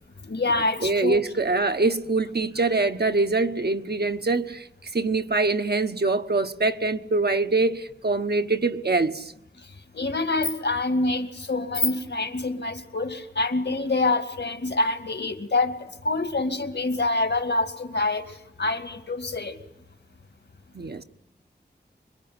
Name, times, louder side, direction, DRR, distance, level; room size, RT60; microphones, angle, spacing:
voice 1, 0.2-1.2 9.9-15.8 16.0-18.2 18.6-19.5, left 2 dB, 80° left, 2.4 m, -26 dB
voice 2, 0.8-4.7 4.9-9.3 20.7-21.0, right 3 dB, 65° right, 1.3 m, -24 dB
25.5 x 22.5 x 9.8 m
wide cardioid pair, 60°, 18 cm